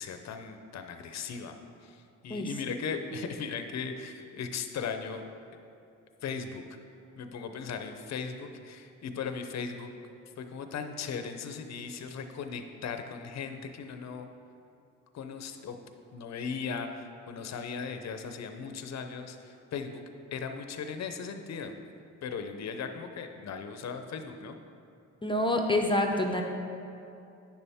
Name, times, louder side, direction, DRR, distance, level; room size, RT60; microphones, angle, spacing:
voice 1, 0.0-1.5 1.8-5.2 6.2-6.8 7.2-9.9 10.4-14.3 15.1-15.8 16.1-20.0 20.3-21.8 22.2-24.6, left 5 dB, 55° left, 7 dB, 0.7 m, -38 dB
voice 2, 25.2-26.4, left 1 dB, 15° left, 2 dB, 0.7 m, -27 dB
9.5 x 6.9 x 3.5 m, 2.7 s
cardioid pair, 80°, 32 cm